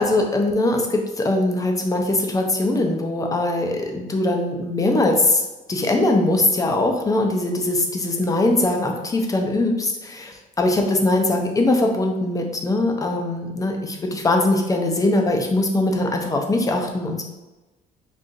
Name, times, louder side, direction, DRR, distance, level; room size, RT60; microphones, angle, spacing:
voice 1, 0.0-17.2, left 2 dB, 20° left, 3 dB, 0.5 m, -21 dB
3.8 x 2.6 x 2.5 m, 1.1 s
cardioid pair, 110°, 17 cm